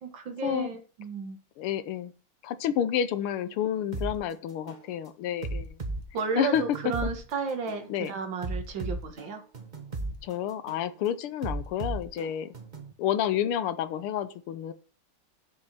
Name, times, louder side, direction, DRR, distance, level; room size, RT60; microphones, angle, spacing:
voice 1, 0.0-1.4 6.1-9.4, right 5 dB, 60° right, 2.2 m, -33 dB
voice 2, 1.6-2.1 2.4-5.8 6.4-6.6 7.9-8.1 10.2-12.5 13.0-14.7, left 10 dB, 85° left, 1.7 m, -29 dB
sound 1, 3.9-4.1 4.7-4.9 5.4-7.1 7.7-7.9 8.4-10.1 10.7-10.9 11.4-12.9, right 2 dB, 25° right, 1.1 m, -35 dB
7.6 x 7.2 x 5.9 m
omnidirectional pair, 2.4 m